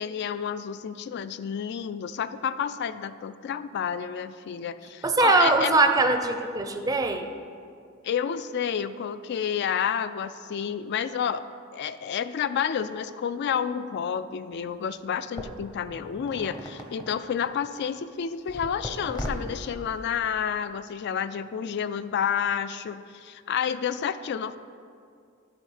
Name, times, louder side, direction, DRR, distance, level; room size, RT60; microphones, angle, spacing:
voice 1, 0.0-5.7 8.0-11.4 11.7-24.6, left 8 dB, 55° left, 14 dB, 0.3 m, -30 dB
voice 2, 5.0-7.2, right 3 dB, 15° right, 6 dB, 0.5 m, -22 dB
sound 1, 14.5-14.6 15.4-17.7 18.5-20.4, equal, 20° left, 0.8 m, -38 dB
11.0 x 4.2 x 5.6 m, 2.3 s
head